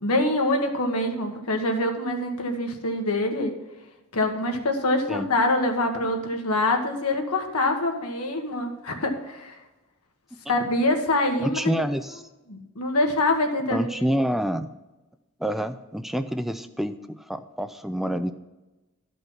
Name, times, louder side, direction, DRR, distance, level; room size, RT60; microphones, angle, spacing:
voice 1, 0.0-3.5 4.1-9.6 10.5-11.6 12.5-13.9, left 2 dB, 90° left, 3 dB, 1.4 m, -25 dB
voice 2, 11.4-12.2 13.7-14.7 15.4-18.3, equal, ahead, 10 dB, 0.3 m, -27 dB
12.0 x 5.4 x 5.7 m, 1.1 s
head